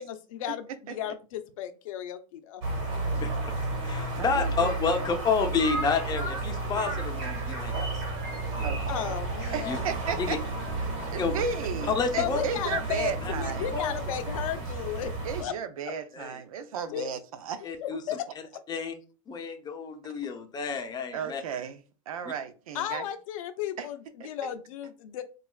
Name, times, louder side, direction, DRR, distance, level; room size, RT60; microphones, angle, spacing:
voice 1, 0.0-2.6 8.9-9.9 12.2-15.1 15.4-15.5 16.9-17.1 17.6-18.3 22.7-25.2, left 11 dB, 75° left, 0.5 m, -34 dB
sound 1, 2.6-15.4, right 2 dB, 60° right, 1.4 m, -32 dB
voice 2, 3.1-3.5 3.8-8.0 8.6-8.9 9.7-9.8 10.2-10.4 11.2-11.4 11.8-12.4 13.7-13.9 16.1-16.4 16.9-17.0 17.6-18.0 18.7-18.9 19.3-21.4, left 5 dB, 25° left, 0.7 m, -30 dB
voice 3, 4.2-5.1 8.6-9.1 9.5-10.4 10.8-13.7 15.2-17.7 20.0-20.1 21.1-21.8 22.1-23.1 23.8-23.9 24.2-24.3, right 7 dB, 85° right, 0.5 m, -35 dB
4.1 x 2.4 x 2.3 m
hypercardioid pair, 110°, 18 cm